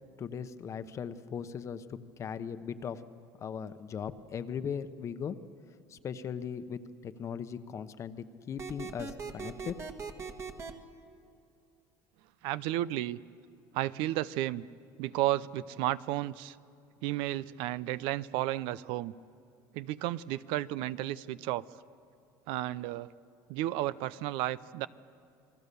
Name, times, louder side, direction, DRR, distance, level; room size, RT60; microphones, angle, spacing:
voice 1, 0.2-1.8 2.2-3.0 3.4-5.4 5.9-9.8, left 7 dB, 35° left, 11 dB, 1.0 m, -38 dB
sound 1, 8.6-10.7, right 5 dB, 30° right, 1.7 m, -40 dB
voice 2, 12.4-13.2 13.7-14.6 15.0-16.6 17.0-19.1 19.7-21.6 22.5-23.1 23.5-24.9, right 15 dB, 75° right, 17 dB, 0.6 m, -32 dB
28.5 x 21.0 x 6.9 m, 2.5 s
cardioid pair, 130°, 9 cm